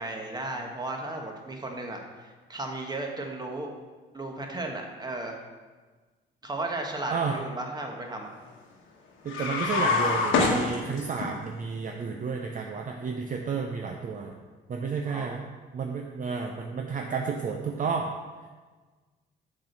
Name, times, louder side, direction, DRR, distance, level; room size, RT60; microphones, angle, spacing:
voice 1, 0.0-3.7 4.1-5.4 6.4-8.3 15.0-15.4, right 2 dB, 20° right, 2 dB, 1.2 m, -35 dB
voice 2, 9.2-14.3 14.7-15.4 15.7-18.1, right 5 dB, 40° right, 2 dB, 0.6 m, -31 dB
sound 1, 9.3-11.3, left 3 dB, 80° left, 1.2 m, -25 dB
6.1 x 4.4 x 5.8 m, 1.4 s
cardioid pair, 90°, 20 cm